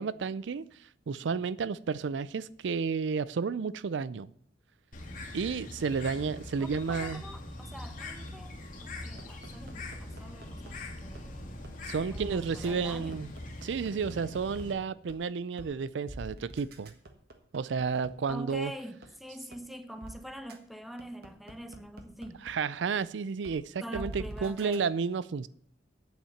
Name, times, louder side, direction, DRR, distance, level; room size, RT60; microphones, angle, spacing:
voice 1, 0.0-4.3 5.3-7.2 11.8-13.3 13.6-16.9 17.5-18.7 22.4-25.5, right 5 dB, 70° right, 0.4 m, -32 dB
Bird, 4.9-14.7, left 2 dB, 45° left, 1.9 m, -42 dB
voice 2, 6.6-11.7 12.1-13.2 18.3-22.5 23.8-24.9, equal, ahead, 0.9 m, -45 dB
sound 1, 9.2-10.7 11.2-11.3 11.6-11.7 12.1-12.3 12.6-12.7 13.1-14.6 15.1-15.2 15.6-15.7 16.1-18.6 19.0-19.1 19.5-19.6 20.0-20.1 20.5-20.6 21.0-22.5 23.0-23.1 23.4-23.5 23.9-24.8, right 1 dB, 55° right, 1.5 m, -44 dB
8.7 x 7.3 x 7.1 m
head